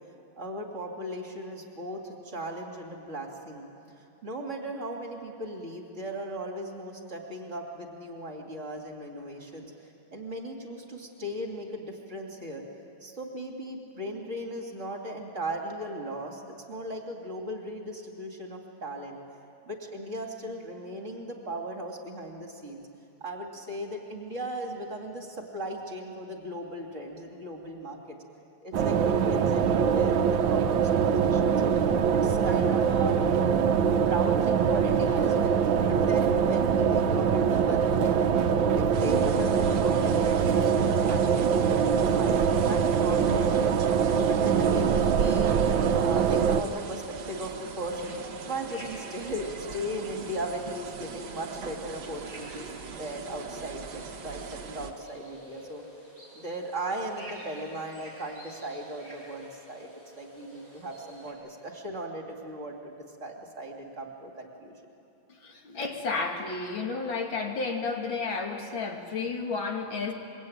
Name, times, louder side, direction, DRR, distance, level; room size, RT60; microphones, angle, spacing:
voice 1, 0.4-3.7 4.2-9.7 10.1-12.6 13.0-16.4 16.7-19.2 19.6-22.8 23.2-28.2 28.6-31.7 32.1-33.1 34.0-35.5 35.8-38.4 38.7-43.8 44.3-45.6 46.0-48.1 48.4-52.7 53.0-55.8 56.3-59.9 60.1-64.8, right 1 dB, 40° right, 1 dB, 3.3 m, -37 dB
sound 1, 28.7-46.6, right 7 dB, 85° right, 1.6 m, -23 dB
sound 2, 38.9-54.9, right 5 dB, 60° right, 1.8 m, -41 dB
sound 3, 47.9-61.3, equal, 20° left, 8.0 m, -50 dB
voice 2, 65.3-70.1, left 4 dB, 90° left, 2 dB, 3.0 m, -32 dB
26.0 x 23.0 x 9.2 m, 2.8 s
omnidirectional pair, 2.1 m